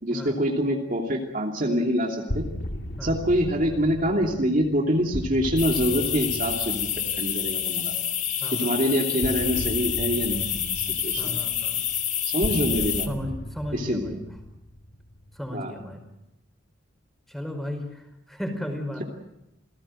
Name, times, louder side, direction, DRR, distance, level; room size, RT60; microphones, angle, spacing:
voice 1, 0.0-2.5 3.0-6.9 7.2-7.9 8.6-11.2 12.2-13.1 13.7-14.2 15.5-15.7, equal, 45° right, 1 dB, 2.9 m, -25 dB
sound 1, 2.3-8.0 9.2-15.5, equal, 65° left, 2.7 m, -36 dB
voice 2, 3.0-3.4 8.4-8.8 11.2-11.8 13.0-14.4 15.3-16.0 17.3-19.0, left 1 dB, ahead, 4 dB, 5.2 m, -35 dB
sound 2, 5.6-13.1, left 10 dB, 40° left, 2.1 m, -28 dB
28.5 x 18.5 x 7.8 m, 0.88 s
head